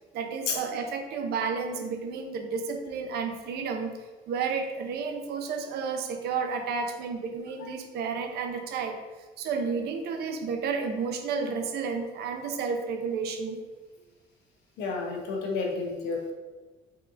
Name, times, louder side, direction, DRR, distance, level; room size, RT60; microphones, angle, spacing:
voice 1, 0.1-3.9 4.3-9.0 9.4-13.6, right 5 dB, 70° right, 5 dB, 0.6 m, -31 dB
voice 2, 14.8-16.3, left 4 dB, 85° left, 0 dB, 0.9 m, -30 dB
4.4 x 3.7 x 2.5 m, 1.3 s
cardioid pair, 110°, 17 cm